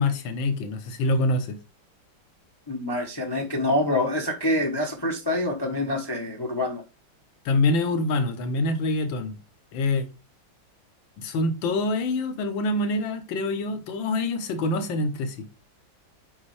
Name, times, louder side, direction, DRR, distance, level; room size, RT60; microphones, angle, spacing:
voice 1, 0.0-1.6 7.4-9.3 9.7-10.0 11.2-15.5, left 2 dB, 80° left, 1.7 m, -25 dB
voice 2, 2.7-6.8, left 1 dB, 30° left, 0.4 m, -26 dB
5.8 x 5.3 x 3.2 m
omnidirectional pair, 2.1 m